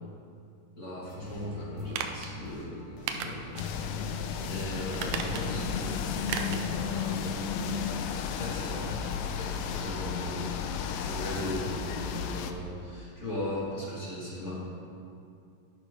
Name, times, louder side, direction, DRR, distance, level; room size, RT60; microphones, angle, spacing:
voice 1, 0.8-3.9 4.3-7.4 8.4-14.5, left 1 dB, 25° left, -7 dB, 2.3 m, -38 dB
sound 1, 1.0-10.1, left 2 dB, 60° left, 1.8 m, -48 dB
sound 2, 1.9-2.3 3.1-3.7 4.1-4.2 4.9-5.7 6.3-6.7 7.0-7.1, right 7 dB, 85° right, 1.6 m, -35 dB
sound 3, 3.6-12.5, left 7 dB, 85° left, 2.2 m, -33 dB
11.5 x 6.7 x 5.6 m, 2.5 s
omnidirectional pair, 4.1 m